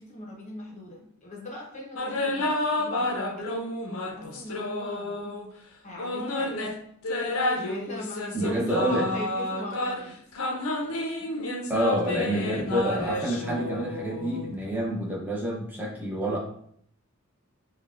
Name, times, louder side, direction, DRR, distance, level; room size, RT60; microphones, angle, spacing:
voice 1, 0.0-3.1 3.4-3.6 4.2-5.3 5.8-6.6 7.6-10.4 11.2-11.5, left 1 dB, 30° left, -2 dB, 0.8 m, -41 dB
sound 1, 2.0-5.5 6.0-14.5, left 1 dB, 65° left, 0.6 m, -30 dB
voice 2, 8.3-9.0 11.7-16.4, equal, 10° right, -4 dB, 0.7 m, -28 dB
5.5 x 2.2 x 2.4 m, 0.66 s
head